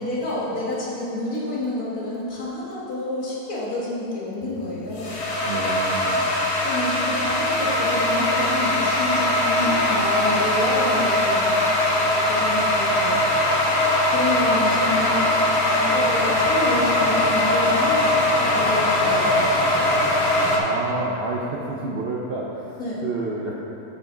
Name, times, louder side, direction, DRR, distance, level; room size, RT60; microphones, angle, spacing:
voice 1, 0.0-5.2 6.2-11.5 11.9-15.3 15.7-19.9 22.8-23.0, left 2 dB, 65° left, -6 dB, 2.0 m, -29 dB
sound 1, 4.4-20.6, left 1 dB, 45° left, 1.2 m, -21 dB
voice 2, 5.4-6.3 20.5-23.5, right 3 dB, 60° right, -3 dB, 0.6 m, -29 dB
9.5 x 5.9 x 3.9 m, 3.0 s
omnidirectional pair, 1.7 m